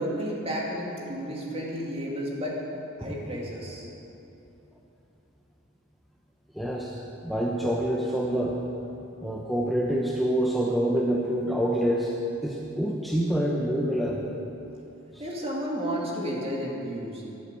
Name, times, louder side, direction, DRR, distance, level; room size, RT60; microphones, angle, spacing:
voice 1, 0.0-2.6 3.0-3.9 15.2-17.2, equal, 30° right, -3 dB, 2.6 m, -32 dB
voice 2, 6.5-7.0 7.2-8.6 9.2-12.1 12.4-14.3, right 1 dB, ahead, -2 dB, 0.8 m, -26 dB
14.0 x 12.0 x 6.9 m, 2.8 s
head